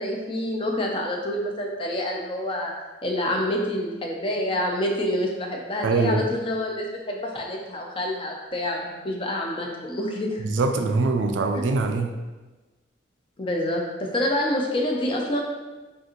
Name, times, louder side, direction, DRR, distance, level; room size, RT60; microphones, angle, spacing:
voice 1, 0.0-2.7 3.0-10.4 13.4-15.4, left 1 dB, 30° left, 1 dB, 0.5 m, -27 dB
voice 2, 5.8-6.3 10.4-12.2, right 3 dB, 80° right, 6 dB, 0.4 m, -23 dB
5.1 x 2.5 x 3.0 m, 1.2 s
head